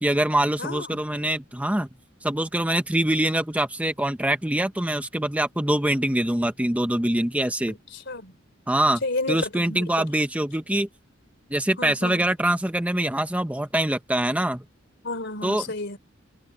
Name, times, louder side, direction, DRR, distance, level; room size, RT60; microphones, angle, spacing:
voice 1, 0.0-1.9 2.2-7.8 8.7-9.0 9.3-10.9 11.5-14.6 15.4-15.6, right 1 dB, 5° right, 0.9 m, -24 dB
voice 2, 0.6-1.0 7.7-8.3 9.0-10.1 11.8-12.3 15.0-16.0, left 2 dB, 60° left, 4.0 m, -32 dB
head